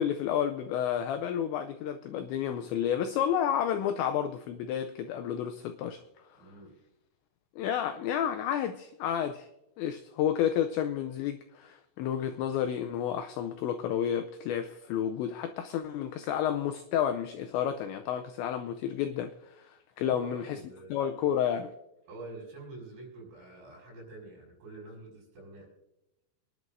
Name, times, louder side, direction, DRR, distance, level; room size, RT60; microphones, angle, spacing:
voice 1, 0.0-6.0 7.6-9.5 9.8-20.6 20.9-21.7, left 9 dB, 85° left, 2.6 m, -31 dB
voice 2, 6.4-6.7 20.0-20.9 22.1-25.7, right 2 dB, 60° right, 7.8 m, -47 dB
26.0 x 11.0 x 2.6 m
omnidirectional pair, 5.8 m